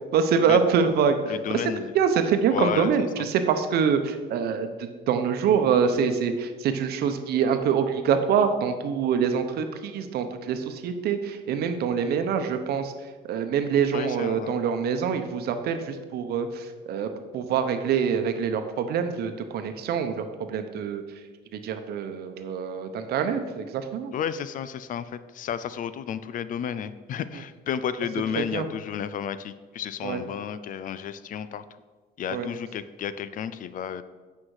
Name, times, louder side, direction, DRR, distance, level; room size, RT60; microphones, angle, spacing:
voice 1, 0.1-1.2 1.5-1.6 1.9-12.9 13.2-21.0 21.5-24.1 28.5-28.7 30.0-30.2 32.3-32.5, right 7 dB, 70° right, 8 dB, 0.9 m, -25 dB
voice 2, 1.3-1.9 2.5-2.9 3.2-3.3 13.9-14.6 24.1-31.6 32.2-34.0, left 8 dB, 50° left, 14 dB, 0.5 m, -32 dB
8.8 x 5.7 x 4.8 m, 1.4 s
cardioid pair, 110°, 17 cm